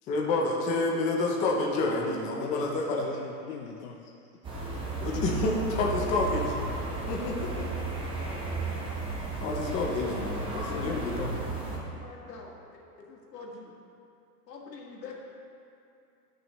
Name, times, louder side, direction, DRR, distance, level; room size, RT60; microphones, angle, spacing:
voice 1, 0.1-2.8 5.0-6.5 7.0-7.6 9.4-11.3, left 3 dB, 15° left, -2 dB, 0.5 m, -29 dB
voice 2, 1.8-2.1 2.4-4.0 10.6-11.2, left 6 dB, 60° left, 0 dB, 0.8 m, -39 dB
sound 1, 4.4-11.8, right 3 dB, 10° right, 1.0 m, -34 dB
voice 3, 6.2-6.5 7.1-7.3 11.9-12.6 13.1-13.7 14.5-15.1, left 4 dB, 80° left, -2 dB, 1.8 m, -45 dB
12.0 x 6.2 x 3.1 m, 2.6 s
hypercardioid pair, 140°, 48 cm